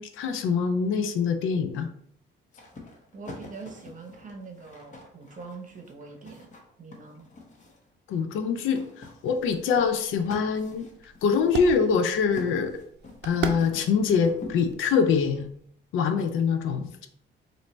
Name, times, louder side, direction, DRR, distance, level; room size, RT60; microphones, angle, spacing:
voice 1, 0.0-1.9 8.1-10.9 11.2-12.7 13.2-15.5 15.9-17.1, left 6 dB, 85° left, 8 dB, 0.5 m, -24 dB
sound 1, 2.5-7.9 8.7-15.1 16.2-16.3, left 3 dB, 40° left, 1.0 m, -45 dB
voice 2, 3.1-6.5 6.8-7.3, right 4 dB, 40° right, 3 dB, 0.9 m, -43 dB
sound 2, 9.4-15.7, right 6 dB, 60° right, 0.5 m, -39 dB
4.3 x 2.7 x 3.1 m, 0.67 s
cardioid pair, 90°, 20 cm